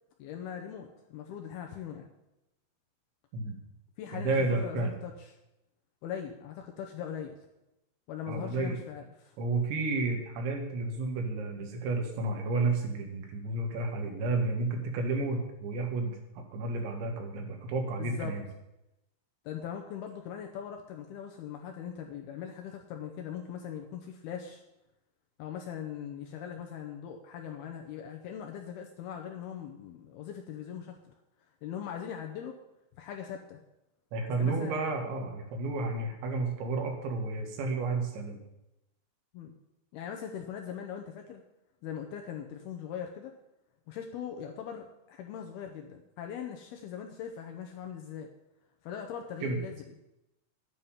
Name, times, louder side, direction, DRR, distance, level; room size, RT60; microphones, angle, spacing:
voice 1, 0.2-2.1 4.0-5.3 6.0-7.3 8.1-9.4 18.0-18.3 19.5-24.6 25.4-31.1 31.6-32.6 33.0-33.6 34.3-34.8 39.3-39.5 39.9-41.4 41.8-43.4 43.9-48.3 48.8-49.8, left 8 dB, 75° left, 3 dB, 2.4 m, -40 dB
voice 2, 4.1-4.9 8.3-8.8 9.4-16.2 16.5-18.4 34.1-38.4 49.4-49.6, right 3 dB, 80° right, 3 dB, 4.0 m, -31 dB
10.5 x 9.4 x 5.7 m, 0.88 s
omnidirectional pair, 5.3 m